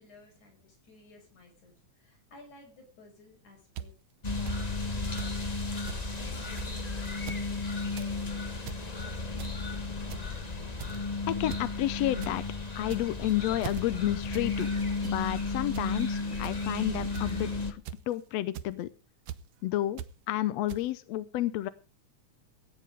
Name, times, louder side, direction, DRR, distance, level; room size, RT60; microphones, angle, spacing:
voice 1, 0.0-3.9 4.3-5.4 6.1-8.7, left 3 dB, 90° left, 2 dB, 7.0 m, -55 dB
sound 1, 3.8-3.9 4.5-4.6 5.2-5.3 5.6-5.7 5.9-6.0 6.6-6.8 7.1-7.4 7.8-8.1 8.5-8.8 9.4-9.7 10.1-10.4 10.8-11.1 11.5-11.6 12.0-12.3 12.8-13.2 13.6-13.8 14.3-14.5 14.8-15.2 15.7-15.9 16.4-16.5 17.1-17.4 17.8-18.1 18.5-18.7 19.3-19.4 20.0-20.1 20.7-20.8, right 11 dB, 70° right, 1.8 m, -40 dB
sound 2, 4.2-17.7, left 3 dB, 45° left, 0.5 m, -34 dB
voice 2, 11.3-12.4 12.8-14.7 15.0-18.9 19.6-21.7, left 14 dB, 70° left, 15 dB, 1.8 m, -31 dB
16.0 x 9.8 x 5.0 m, 0.32 s
omnidirectional pair, 3.3 m